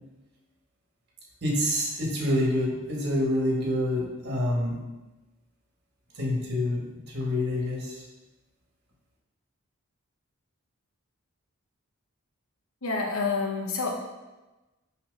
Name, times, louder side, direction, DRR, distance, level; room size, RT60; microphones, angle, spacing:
voice 1, 1.4-4.8 6.1-8.0, left 1 dB, 50° right, -3 dB, 1.7 m, -27 dB
voice 2, 12.8-14.0, left 4 dB, 70° left, 1 dB, 1.0 m, -28 dB
7.1 x 3.2 x 5.3 m, 1.1 s
head